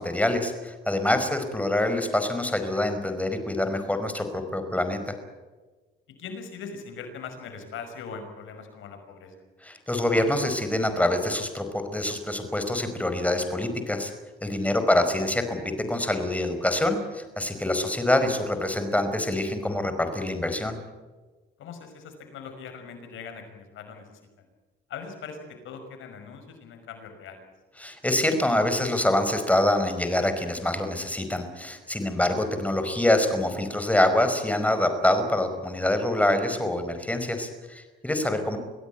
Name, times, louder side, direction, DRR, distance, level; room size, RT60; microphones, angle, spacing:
voice 1, 0.0-5.1 9.6-14.1 14.4-15.6 15.9-20.8 27.8-38.6, left 1 dB, 5° left, 7 dB, 5.1 m, -25 dB
voice 2, 6.1-9.4 14.6-14.9 21.6-24.5 24.9-27.4 32.1-32.2, left 5 dB, 80° left, 7 dB, 5.6 m, -41 dB
25.0 x 16.5 x 9.3 m, 1.3 s
cardioid pair, 90°, 20 cm